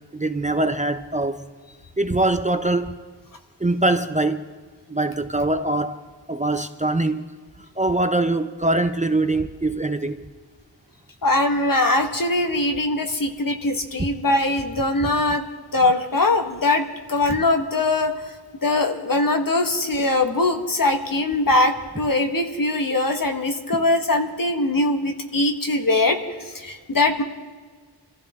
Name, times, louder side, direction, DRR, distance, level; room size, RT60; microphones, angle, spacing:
voice 1, 0.1-1.5 2.0-3.0 3.6-4.4 4.9-6.0 6.3-7.2 7.8-10.2 14.0-14.1 15.0-15.1 23.7-23.8, right 2 dB, 20° right, 0.6 m, -23 dB
voice 2, 11.2-15.4 15.7-18.1 18.6-26.2 26.5-27.2, left 2 dB, 50° left, 1.5 m, -21 dB
25.5 x 15.0 x 3.7 m
wide cardioid pair, 75°, 42 cm